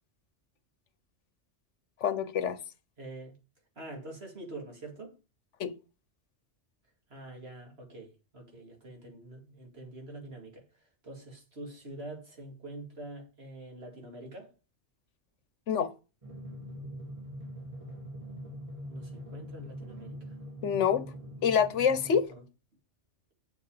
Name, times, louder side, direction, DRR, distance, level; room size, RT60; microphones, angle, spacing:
voice 1, 2.0-2.6 5.6-5.7 15.7-15.9 20.6-21.0 21.4-22.2, left 7 dB, 80° left, 1.2 m, -26 dB
voice 2, 3.0-3.4 3.8-5.2 7.1-10.6 11.0-14.5 18.9-20.3 22.3-22.4, right 2 dB, 60° right, 2.7 m, -45 dB
Drum, 16.2-22.2, equal, 30° right, 2.5 m, -43 dB
7.8 x 6.7 x 4.9 m
omnidirectional pair, 1.2 m